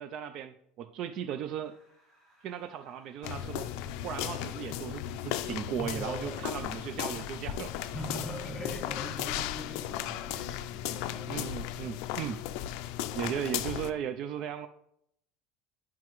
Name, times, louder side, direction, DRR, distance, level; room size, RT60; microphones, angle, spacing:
voice 1, 0.0-1.8 2.4-3.7 4.0-7.7 11.3-12.4 13.1-14.7, right 9 dB, 45° right, 10 dB, 0.3 m, -36 dB
sound 1, 1.6-9.2, equal, 20° right, 2.3 m, -65 dB
sound 2, 3.2-13.9, left 12 dB, 65° left, 0.4 m, -36 dB
voice 2, 5.8-6.4 7.9-11.3 13.0-13.4, left 1 dB, 15° left, -2 dB, 3.1 m, -41 dB
9.4 x 5.7 x 3.0 m, 0.73 s
cardioid pair, 165°, 0 cm